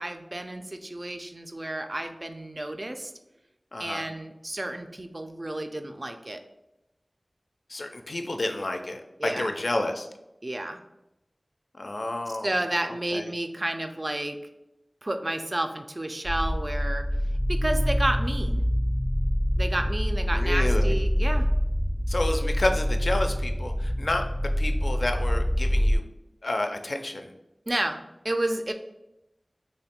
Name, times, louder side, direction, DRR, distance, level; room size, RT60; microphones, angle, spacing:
voice 1, 0.0-3.1 3.8-6.4 9.2-9.5 10.4-10.8 12.3-14.4 15.0-17.1 17.5-18.6 19.6-21.5 27.7-28.7, right 1 dB, 50° right, 6 dB, 0.3 m, -31 dB
voice 2, 3.7-4.0 7.7-10.1 11.8-12.5 13.1-13.3 20.3-20.9 22.1-26.0 26.4-27.3, left 2 dB, 80° left, 5 dB, 0.3 m, -30 dB
sound 1, 16.3-26.0, equal, 15° left, 0.4 m, -25 dB
3.1 x 2.1 x 4.2 m, 0.91 s
wide cardioid pair, 40°, 0 cm